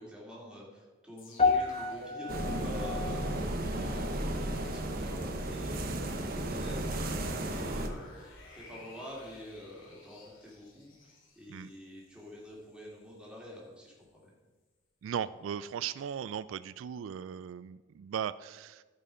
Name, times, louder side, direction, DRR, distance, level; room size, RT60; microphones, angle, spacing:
voice 1, 0.0-14.3, left 1 dB, 5° right, -4 dB, 2.6 m, -47 dB
sound 1, 1.2-12.4 12.7-12.8, equal, 80° left, 2.5 m, -50 dB
sound 2, 1.4-5.8 6.0-6.4 7.1-7.2, left 4 dB, 35° left, 1.0 m, -34 dB
sound 3, 2.3-7.9, right 1 dB, 45° right, 1.0 m, -34 dB
voice 2, 15.0-18.8, right 8 dB, 85° right, 16 dB, 0.3 m, -37 dB
15.5 x 5.4 x 5.0 m, 1.3 s
head